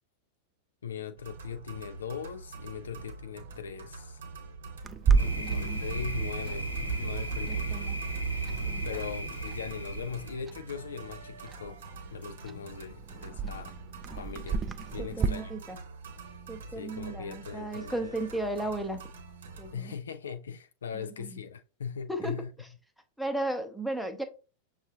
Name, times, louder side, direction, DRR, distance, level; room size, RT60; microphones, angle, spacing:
voice 1, 0.8-4.2 5.1-7.8 8.8-11.8 12.1-13.8 14.2-14.6 14.9-15.5 16.7-18.2 19.7-22.5, left 7 dB, 65° left, 0.3 m, -40 dB
sound 1, 1.2-19.8, right 3 dB, 60° right, 0.8 m, -46 dB
Clock, 4.8-15.3, right 5 dB, 20° right, 0.3 m, -34 dB
Thunder, 5.1-10.4, right 3 dB, 85° left, 1.0 m, -33 dB
voice 2, 5.3-5.8 7.5-8.0 8.7-8.9 15.0-15.8 16.5-19.0 19.6-20.0 20.9-21.3 22.1-22.3 22.6-22.7 23.2-24.2, right 1 dB, ahead, 0.7 m, -35 dB
6.3 x 2.4 x 2.8 m
figure-of-eight pair, 90°, 0 cm